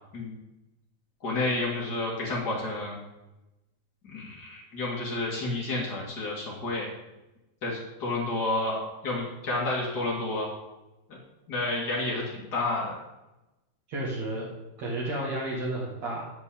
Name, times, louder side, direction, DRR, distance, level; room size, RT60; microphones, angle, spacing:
voice 1, 1.2-3.0 4.0-6.9 7.6-10.5 11.5-12.9, left 2 dB, 80° left, -4 dB, 0.9 m, -30 dB
voice 2, 13.9-14.5 14.8-16.3, right 1 dB, 50° right, -5 dB, 2.3 m, -32 dB
9.3 x 6.0 x 8.5 m, 0.99 s
omnidirectional pair, 5.5 m